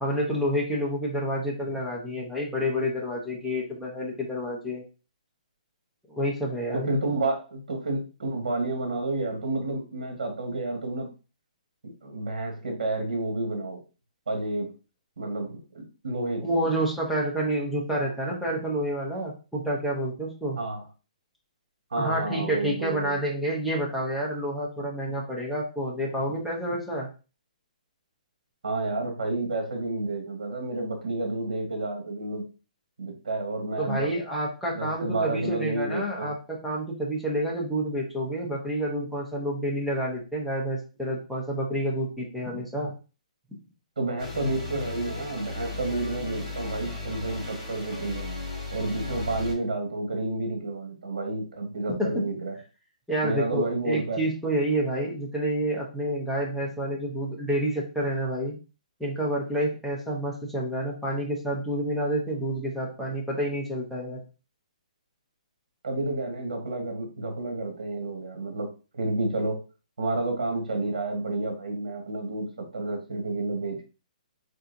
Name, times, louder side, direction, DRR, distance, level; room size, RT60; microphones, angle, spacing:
voice 1, 0.0-4.8 6.1-6.9 16.4-20.6 22.0-27.1 33.8-42.9 52.0-52.3 53.1-58.5 59.0-64.2, equal, ahead, -5 dB, 0.8 m, -29 dB
voice 2, 6.7-11.1 11.8-13.8 14.3-14.7 15.2-16.5 20.6-20.9 21.9-23.2 28.6-32.4 33.0-34.1 34.7-36.3 44.0-48.2 48.7-52.6 53.2-54.2 65.8-68.7 68.9-69.6 70.0-73.9, right 2 dB, 80° right, 2 dB, 1.6 m, -30 dB
sound 1, 44.2-49.5, left 3 dB, 20° right, 2.5 m, -36 dB
4.3 x 3.8 x 2.6 m, 0.32 s
hypercardioid pair, 175°, 4 cm